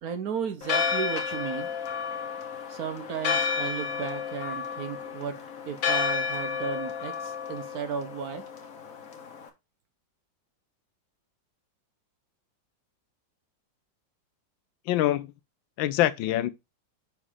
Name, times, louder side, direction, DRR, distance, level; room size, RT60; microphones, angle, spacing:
voice 1, 0.0-1.7 2.7-5.4 5.7-8.4, right 7 dB, 65° right, 1.1 m, -34 dB
Church bell, 0.6-9.5, left 6 dB, 50° left, 1.5 m, -31 dB
voice 2, 14.9-15.3 15.8-16.5, left 14 dB, 85° left, 1.3 m, -24 dB
5.6 x 4.9 x 4.8 m
omnidirectional pair, 2.1 m